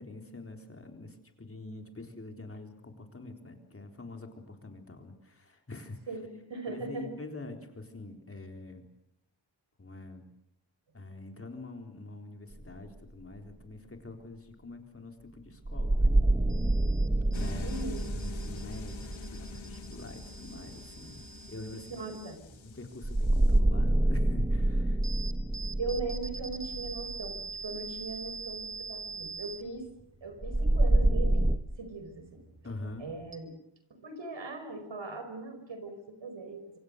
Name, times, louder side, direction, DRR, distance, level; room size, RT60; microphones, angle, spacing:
voice 1, 0.0-6.0 6.7-8.9 9.8-10.3 10.9-16.1 17.3-17.7 18.1-21.2 21.5-21.9 22.6-25.0 32.6-33.1, left 2 dB, 30° left, 4 dB, 3.9 m, -45 dB
voice 2, 6.1-7.1 17.6-18.1 21.9-22.4 25.8-29.9 30.2-31.5 31.8-32.4 33.0-33.5 34.0-36.8, right 3 dB, 70° right, 8 dB, 5.5 m, -39 dB
sound 1, 12.5-12.7 15.7-20.4 23.0-28.1 30.4-31.6, right 1 dB, 15° right, 1.3 m, -27 dB
sound 2, 15.2-33.4, right 5 dB, 35° right, 2.9 m, -46 dB
sound 3, 17.3-23.6, left 5 dB, 90° left, 2.6 m, -45 dB
26.5 x 25.5 x 6.7 m, 0.77 s
wide cardioid pair, 140°, 45 cm